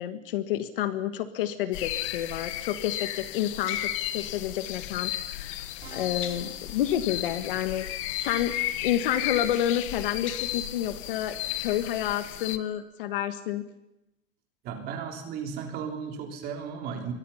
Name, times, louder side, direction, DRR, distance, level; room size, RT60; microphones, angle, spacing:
voice 1, 0.0-5.6 5.9-8.5 8.8-13.6, left 11 dB, 40° left, 11 dB, 1.5 m, -29 dB
sound 1, 1.7-12.6, left 13 dB, 25° left, 0.8 m, -34 dB
Musical instrument, 5.8-7.9, right 8 dB, 80° right, 3.4 m, -50 dB
voice 2, 14.6-17.1, right 7 dB, 20° right, 4 dB, 3.5 m, -35 dB
26.5 x 23.5 x 5.7 m, 0.91 s
supercardioid pair, 180°, 41 cm